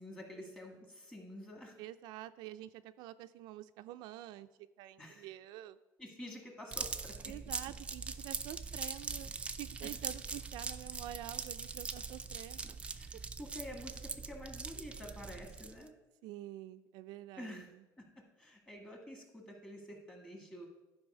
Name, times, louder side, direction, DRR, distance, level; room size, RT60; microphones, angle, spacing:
voice 1, 0.0-1.8 5.0-5.3 6.0-7.1 13.0-15.9 17.4-17.7 18.0-18.1 18.4-20.7, left 1 dB, 10° left, 1 dB, 1.7 m, -49 dB
voice 2, 1.8-5.8 7.2-9.3 9.6-12.8 16.2-17.8, right 14 dB, 80° right, 10 dB, 0.3 m, -48 dB
sound 1, 6.7-15.9, right 4 dB, 15° right, 0.4 m, -42 dB
11.5 x 4.6 x 5.5 m, 1.0 s
cardioid pair, 140°, 7 cm